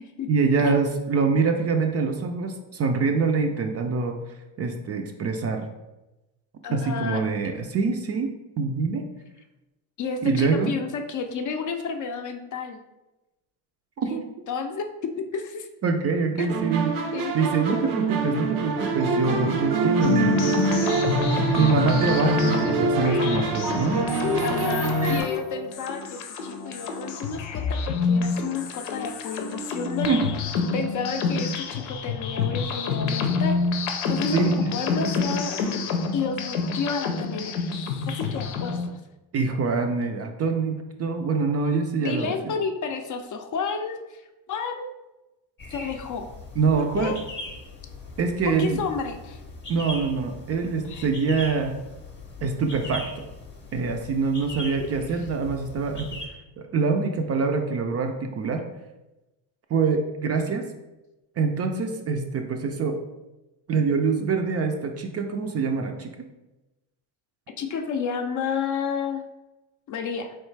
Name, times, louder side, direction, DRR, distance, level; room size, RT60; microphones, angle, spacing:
voice 1, 0.3-4.2 4.6-5.7 6.7-9.1 10.2-10.8 14.0-14.2 15.8-17.1 17.3-20.6 21.6-24.4 30.1-30.3 34.3-34.7 39.3-42.5 46.6-47.2 48.2-48.8 49.7-51.7 52.4-53.3 53.7-56.2 56.6-58.6 59.7-60.7 61.4-63.0 63.7-66.2, right 4 dB, 35° right, 4 dB, 0.4 m, -25 dB
voice 2, 6.6-7.2 10.0-12.8 14.0-15.7 16.4-16.5 17.1-17.3 17.7-17.8 20.8-21.3 24.4-30.2 30.7-33.6 34.1-35.6 36.1-37.5 38.1-39.0 42.0-44.2 44.5-44.9 45.7-46.3 46.8-47.2 48.4-49.4 50.9-51.1 67.6-69.2 69.9-70.4, left 5 dB, 45° left, 6 dB, 0.5 m, -31 dB
sound 1, 16.5-25.2, right 3 dB, 90° right, 0.8 m, -25 dB
sound 2, 20.0-38.9, left 4 dB, 90° left, 0.7 m, -27 dB
sound 3, 45.6-56.3, left 2 dB, 25° left, 0.8 m, -40 dB
3.9 x 3.2 x 3.2 m, 1.0 s
cardioid pair, 105°, 44 cm